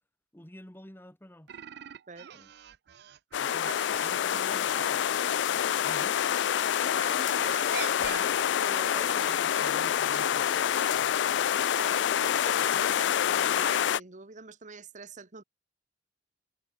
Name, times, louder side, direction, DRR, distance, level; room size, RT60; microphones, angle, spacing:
voice 1, 0.3-1.6 2.3-2.5 3.4-3.7 4.0-5.1 5.8-6.3 8.9-11.4, equal, 10° left, 2.3 m, -50 dB
sound 1, 1.5-6.7 7.3-13.1, right 9 dB, 65° right, 0.4 m, -46 dB
sound 2, 3.3-14.0, left 9 dB, 80° left, 0.3 m, -27 dB
voice 2, 3.5-4.9 6.8-9.1 9.5-9.6 11.7-15.4, right 5 dB, 45° right, 1.4 m, -45 dB
head